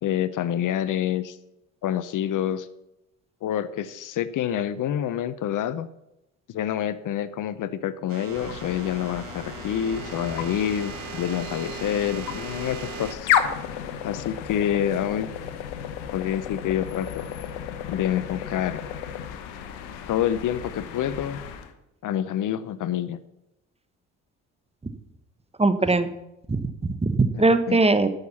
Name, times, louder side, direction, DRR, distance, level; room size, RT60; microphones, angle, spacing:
voice 1, 0.0-1.4 1.8-2.7 3.4-5.9 6.5-13.3 14.0-15.3 16.1-17.3 17.9-18.8 20.1-21.4 22.0-23.2 25.8-25.9 27.3-27.8, left 10 dB, 55° left, 15 dB, 0.8 m, -27 dB
sound 1, 8.1-13.1, right 11 dB, 65° right, 1.2 m, -39 dB
sound 2, 8.3-21.7, left 9 dB, 75° left, 1.3 m, -33 dB
voice 2, 25.6-26.1 26.5-28.1, right 3 dB, 15° right, 10 dB, 1.2 m, -21 dB
11.0 x 6.6 x 7.2 m, 0.89 s
hypercardioid pair, 60°, 38 cm